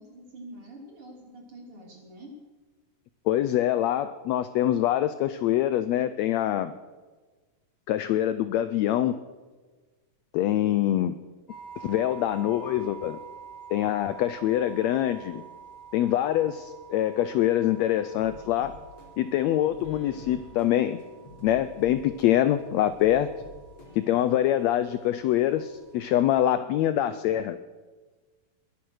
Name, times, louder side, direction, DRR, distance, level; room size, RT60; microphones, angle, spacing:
voice 1, 0.0-2.3, right 1 dB, 40° right, 0 dB, 4.0 m, -46 dB
voice 2, 3.3-6.7 7.9-9.2 10.3-11.2 11.8-13.2 13.7-15.4 15.9-18.7 19.2-21.0 21.4-23.3 23.9-27.6, left 12 dB, 85° left, 13 dB, 1.5 m, -24 dB
sound 1, 11.5-26.4, right 7 dB, 20° left, 2.1 m, -48 dB
sound 2, 18.2-24.3, left 1 dB, 50° left, 3.9 m, -49 dB
21.5 x 9.5 x 6.4 m, 1.3 s
omnidirectional pair, 3.7 m